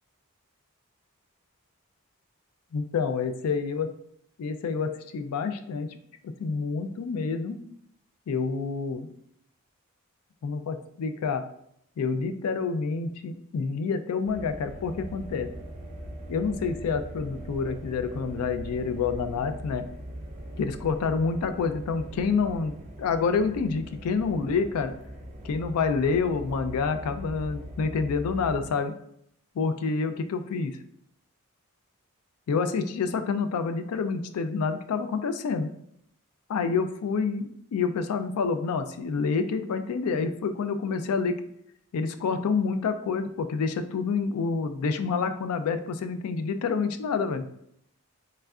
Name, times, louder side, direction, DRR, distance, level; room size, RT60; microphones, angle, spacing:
voice 1, 2.7-3.9 4.4-6.0 6.2-7.6 8.3-9.1 10.4-11.4 12.0-15.5 16.3-19.9 20.6-22.7 23.0-24.9 25.4-28.9 29.6-30.8 32.5-35.7 36.5-41.4 41.9-47.5, left 5 dB, 85° left, 9 dB, 0.3 m, -28 dB
sound 1, 14.3-28.7, right 1 dB, 30° right, 0.5 m, -41 dB
3.6 x 3.2 x 2.3 m, 0.72 s
head